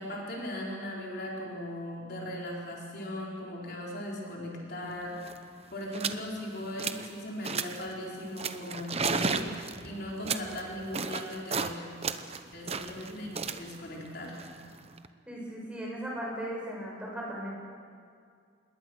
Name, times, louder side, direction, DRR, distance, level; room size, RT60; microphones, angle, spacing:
voice 1, 0.0-5.2 5.7-11.7 12.5-13.3 13.6-14.4, left 1 dB, 50° left, -3 dB, 4.4 m, -38 dB
sound 1, 4.9-5.0 5.2-5.4 5.9-6.2 6.6-7.1 7.4-7.9 8.4-11.7 12.0-15.1, right 5 dB, 30° right, 0.9 m, -34 dB
voice 2, 15.3-17.5, equal, 5° right, -3 dB, 6.0 m, -37 dB
27.0 x 21.0 x 6.4 m, 2.2 s
head